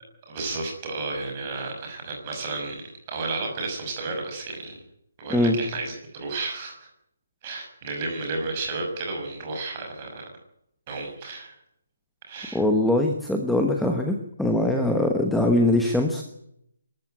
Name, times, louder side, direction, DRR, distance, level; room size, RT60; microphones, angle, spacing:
voice 1, 0.3-2.8 3.1-4.8 5.2-6.9 7.4-10.2 10.9-11.5 12.3-12.6, right 3 dB, 20° right, 2 dB, 6.2 m, -32 dB
voice 2, 12.5-16.2, left 1 dB, ahead, 3 dB, 1.1 m, -22 dB
24.5 x 14.0 x 9.3 m, 0.76 s
hypercardioid pair, 175°, 0 cm